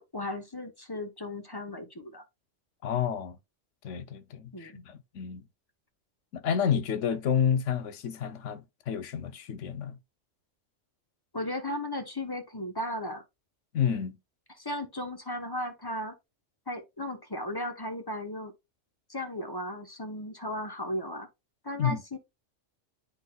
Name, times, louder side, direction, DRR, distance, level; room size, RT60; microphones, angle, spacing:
voice 1, 0.0-2.2 4.5-4.8 11.3-13.2 14.6-16.1 16.7-18.5 19.1-21.3 21.6-22.2, left 1 dB, 20° left, 1.0 m, -36 dB
voice 2, 2.8-3.4 3.8-5.4 6.3-10.0 13.7-14.2 21.8-22.0, left 8 dB, 80° left, 1.1 m, -30 dB
10.0 x 3.9 x 2.3 m
omnidirectional pair, 1.3 m